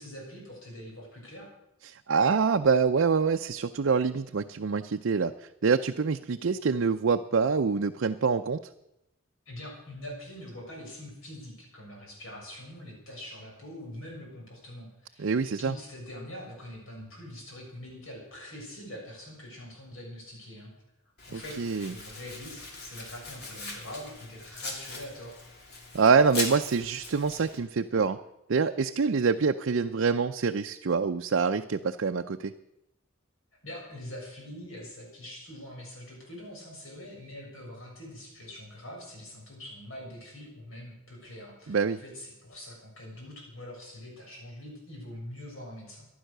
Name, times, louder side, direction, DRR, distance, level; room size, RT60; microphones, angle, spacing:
voice 1, 0.0-1.5 9.5-15.3 15.6-20.7 21.3-21.6 21.9-25.4 33.6-46.1, left 1 dB, 80° left, -1 dB, 6.9 m, -44 dB
voice 2, 1.8-5.3 5.6-8.6 15.2-15.8 21.3-21.9 25.9-28.2 28.5-32.5 41.7-42.0, right 5 dB, 65° right, 6 dB, 0.5 m, -25 dB
Domestic sounds home sounds, 21.2-27.6, left 3 dB, 50° left, 2.9 m, -40 dB
15.0 x 11.0 x 6.7 m, 0.87 s
head